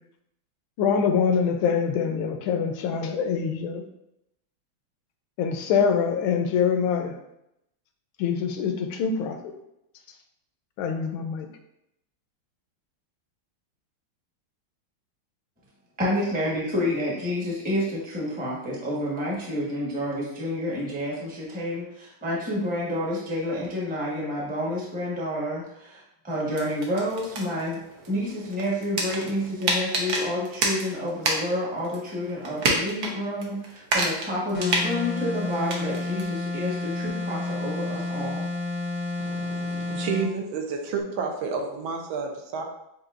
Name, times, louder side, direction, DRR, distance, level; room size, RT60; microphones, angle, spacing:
voice 1, 0.8-3.8 5.4-7.2 8.2-9.5 10.8-11.5, left 6 dB, 85° left, 6 dB, 1.4 m, -24 dB
voice 2, 16.0-27.8 28.1-38.5, left 1 dB, 5° right, -5 dB, 0.7 m, -29 dB
sound 1, 26.5-31.6 31.8-33.1 33.4-36.2, right 2 dB, 60° right, 1.2 m, -29 dB
sound 2, 34.5-40.3, left 2 dB, 65° left, 0.6 m, -30 dB
voice 3, 39.2-42.6, right 5 dB, 80° right, 2 dB, 1.5 m, -30 dB
7.8 x 2.7 x 2.5 m, 0.82 s
omnidirectional pair, 2.2 m